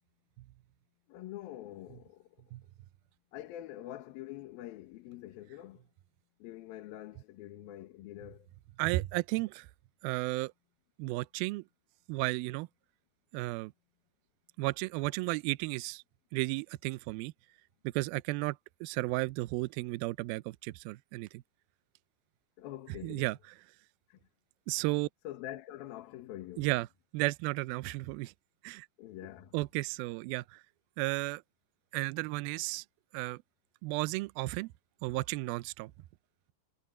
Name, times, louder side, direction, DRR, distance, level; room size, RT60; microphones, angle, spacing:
voice 1, 1.1-2.3 3.3-5.8 6.4-8.5 22.6-23.3 24.1-24.2 25.2-26.7 29.0-29.6, left 13 dB, 70° left, 2.9 m, -45 dB
voice 2, 8.8-9.7 10.0-10.5 11.0-11.6 12.1-12.7 13.3-13.7 14.6-16.0 16.3-17.3 17.8-21.3 23.0-23.4 24.7-25.1 26.6-26.9 27.1-28.3 28.6-28.9 29.5-30.4 31.0-31.4 31.9-32.8 33.1-33.4 33.8-34.7 35.0-35.9, right 21 dB, 80° right, 2.2 m, -33 dB
omnidirectional pair, 4.8 m